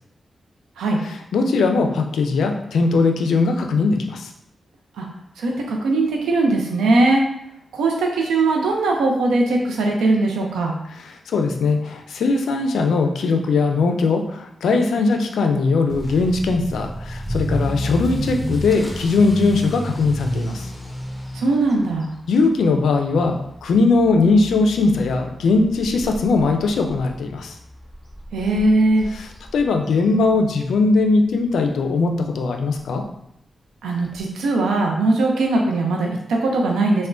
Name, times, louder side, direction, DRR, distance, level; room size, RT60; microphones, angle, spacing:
voice 1, 1.0-4.3 11.3-20.7 22.3-27.5 29.1-33.0, left 3 dB, 80° left, 4 dB, 0.3 m, -19 dB
voice 2, 5.4-7.2 7.7-10.7 21.3-22.1 28.3-29.1 33.8-37.1, right 2 dB, 85° right, 0 dB, 0.4 m, -20 dB
Motor vehicle (road) / Accelerating revving vroom, 15.9-30.8 31.0-31.4 31.9-32.0 32.4-32.5 32.7-32.8 34.1-34.2, right 1 dB, ahead, 0.7 m, -32 dB
3.6 x 2.1 x 2.4 m, 0.77 s
supercardioid pair, 40°, 0 cm